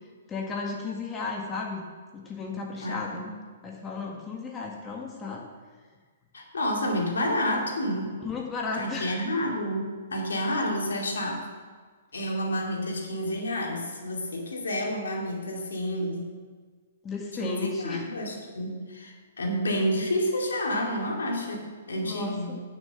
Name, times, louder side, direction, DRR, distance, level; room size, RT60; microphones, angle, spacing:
voice 1, 0.3-1.8 2.1-3.3 3.6-5.4 8.2-9.2 17.0-18.0 22.0-22.6, left 4 dB, 20° left, -1 dB, 1.7 m, -34 dB
voice 2, 2.8-3.3 6.3-8.1 8.7-11.4 12.1-16.3 17.4-22.6, equal, 75° left, 0 dB, 2.6 m, -29 dB
10.5 x 6.7 x 7.9 m, 1.5 s
figure-of-eight pair, 120°, 0 cm